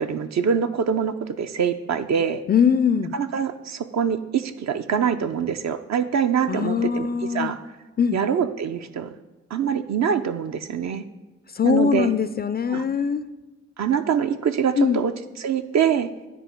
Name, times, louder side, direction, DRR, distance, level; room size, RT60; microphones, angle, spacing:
voice 1, 0.0-2.4 3.1-7.6 8.1-9.2 9.5-11.0 11.6-12.1 12.7-12.8 13.8-15.1 15.4-16.1, right 7 dB, 55° right, 9 dB, 0.6 m, -24 dB
voice 2, 2.5-3.1 6.5-7.5 8.0-8.2 11.5-13.2 14.8-15.0, left 7 dB, 30° left, 13 dB, 0.4 m, -21 dB
9.4 x 3.4 x 4.5 m, 1.2 s
supercardioid pair, 40°, 33 cm